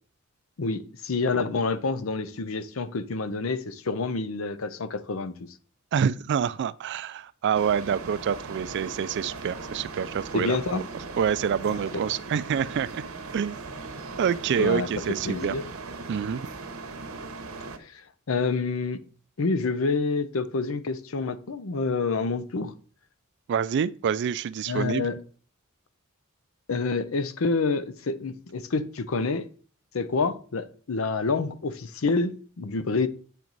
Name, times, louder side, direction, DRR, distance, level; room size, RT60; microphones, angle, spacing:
voice 1, 0.6-5.5 10.3-10.8 11.7-11.8 14.6-15.6 17.8-19.0 19.4-22.7 24.7-25.2 26.7-29.5 29.9-33.1, left 4 dB, 70° left, 0.6 m, -28 dB
voice 2, 5.9-10.8 11.2-13.0 13.3-13.6 14.2-15.5 16.1-16.5 23.5-25.1, right 7 dB, 55° right, 0.3 m, -27 dB
sound 1, 7.5-17.8, right 3 dB, 90° right, 0.9 m, -39 dB
8.3 x 4.5 x 3.9 m
head